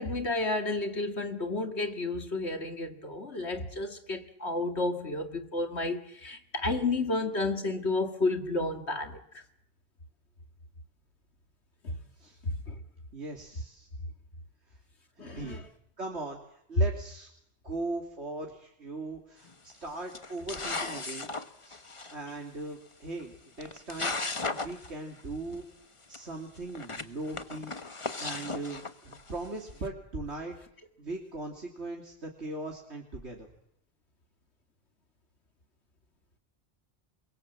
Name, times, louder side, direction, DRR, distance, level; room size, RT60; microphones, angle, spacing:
voice 1, 0.0-9.2 11.8-11.9 12.4-12.8 15.2-15.6, left 2 dB, 75° left, 2.5 m, -31 dB
voice 2, 13.1-13.9 14.7-14.8 15.2-15.7 16.0-17.3 17.6-21.3 21.6-21.9 22.1-24.2 24.5-25.6 26.1-27.7 28.2-30.6 31.0-33.5, right 2 dB, 75° right, 3.4 m, -39 dB
sound 1, 19.4-19.7 20.1-22.1 23.2-23.3 23.6-24.9 25.2-25.3 25.5-25.6 26.1-26.2 26.7-29.5, left 3 dB, 30° left, 1.2 m, -36 dB
29.5 x 22.0 x 7.6 m
omnidirectional pair, 1.1 m